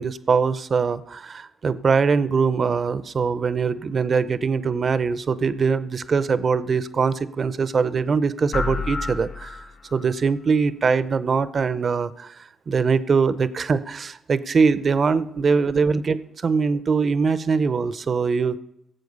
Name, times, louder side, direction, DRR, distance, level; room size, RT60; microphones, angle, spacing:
voice 1, 0.0-9.6 9.9-18.6, right 5 dB, 45° right, 15 dB, 0.7 m, -22 dB
sound 1, 8.5-10.1, left 4 dB, 55° left, 2.3 m, -29 dB
16.5 x 7.7 x 5.4 m, 0.81 s
cardioid pair, 90°, 0 cm